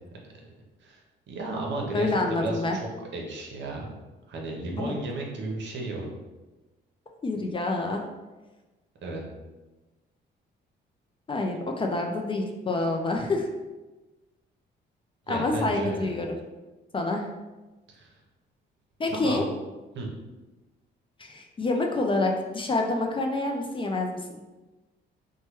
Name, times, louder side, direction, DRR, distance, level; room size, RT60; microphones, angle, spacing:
voice 1, 1.3-3.9 4.3-6.1 9.0-9.2 15.3-16.1 17.9-18.1 19.1-19.5 19.9-20.1, right 2 dB, 65° right, -1 dB, 0.7 m, -33 dB
voice 2, 1.9-2.8 4.8-4.9 7.2-8.0 11.3-13.5 15.3-16.4 16.9-17.3 19.0-19.5 21.2-24.2, left 2 dB, 25° left, 2 dB, 0.4 m, -27 dB
3.1 x 2.2 x 3.0 m, 1.2 s
cardioid pair, 90°, 20 cm